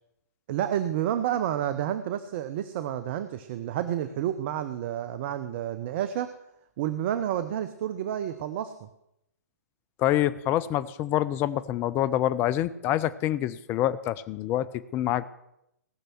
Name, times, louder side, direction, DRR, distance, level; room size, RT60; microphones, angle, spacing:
voice 1, 0.5-6.3 6.8-8.9, right 11 dB, 40° right, 12 dB, 0.7 m, -30 dB
voice 2, 10.0-14.7 14.9-15.3, left 12 dB, 25° left, 15 dB, 0.6 m, -26 dB
18.0 x 6.7 x 6.2 m, 0.82 s
figure-of-eight pair, 125°, 9 cm